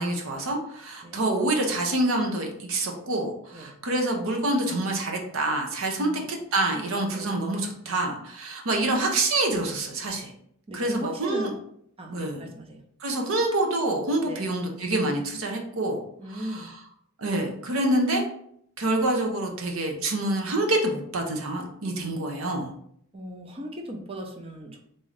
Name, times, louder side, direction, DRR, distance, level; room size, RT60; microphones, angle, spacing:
voice 1, 0.0-10.3 10.7-11.5 12.1-12.4 13.0-16.0 16.3-16.7 17.2-18.2 18.8-22.7, right 2 dB, 65° right, 2 dB, 0.7 m, -27 dB
voice 2, 5.9-6.2 7.1-7.4 10.7-11.6 12.0-12.8 14.2-14.5 16.2-16.7 23.1-24.8, right 1 dB, 25° right, 2 dB, 0.5 m, -37 dB
3.7 x 2.7 x 3.2 m, 0.69 s
head